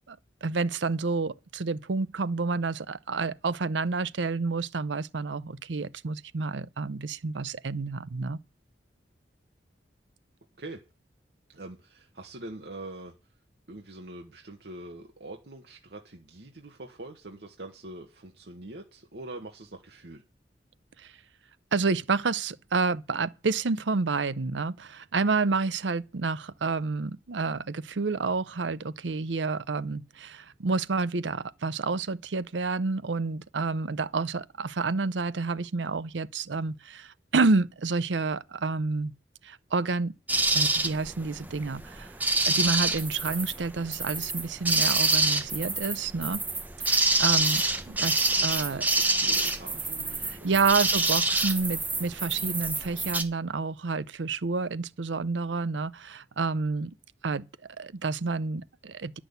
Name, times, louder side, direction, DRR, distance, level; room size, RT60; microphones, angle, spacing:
voice 1, 0.1-8.4 21.0-21.1 21.7-39.1 39.4-40.1 40.5-42.2 42.4-46.4 46.8-48.8 50.2-56.9 57.2-57.4 57.8-59.2, right 4 dB, 90° right, 0.7 m, -29 dB
voice 2, 11.5-13.1 13.7-20.2 48.3-50.6, right 2 dB, 65° right, 1.4 m, -44 dB
sound 1, 40.3-53.2, right 2 dB, 10° right, 1.0 m, -27 dB
10.5 x 6.2 x 8.1 m
head